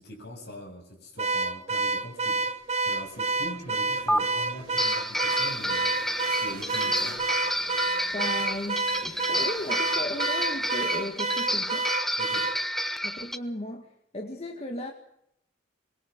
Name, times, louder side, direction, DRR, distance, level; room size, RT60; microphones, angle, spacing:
voice 1, 0.0-6.0 6.4-7.2 12.2-12.5, equal, 55° left, 2 dB, 7.6 m, -42 dB
Car / Alarm, 1.2-12.6, right 3 dB, 35° right, 0.9 m, -29 dB
sound 1, 2.1-11.9, right 3 dB, 50° right, 4.8 m, -48 dB
sound 2, 4.1-4.2 4.8-13.4, equal, ahead, 0.9 m, -30 dB
voice 2, 8.1-11.9 13.0-14.9, left 1 dB, 30° left, 2 dB, 2.0 m, -36 dB
23.0 x 22.0 x 6.4 m, 0.79 s
head